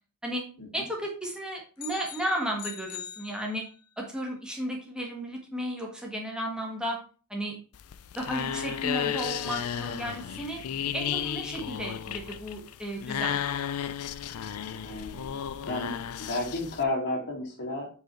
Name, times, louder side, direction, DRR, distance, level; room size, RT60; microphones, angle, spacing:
voice 1, 0.7-3.6 4.0-7.0 7.3-7.6 8.1-10.6 10.9-13.4, right 1 dB, 5° right, -1 dB, 1.6 m, -34 dB
sound 1, 1.8-4.0, left 9 dB, 90° left, 0.8 m, -42 dB
sound 2, 7.7-16.8, left 9 dB, 70° left, 0.4 m, -33 dB
voice 2, 14.8-15.3 15.7-15.9 16.2-17.9, left 2 dB, 55° left, -1 dB, 2.3 m, -32 dB
5.0 x 4.7 x 4.4 m, 0.37 s
head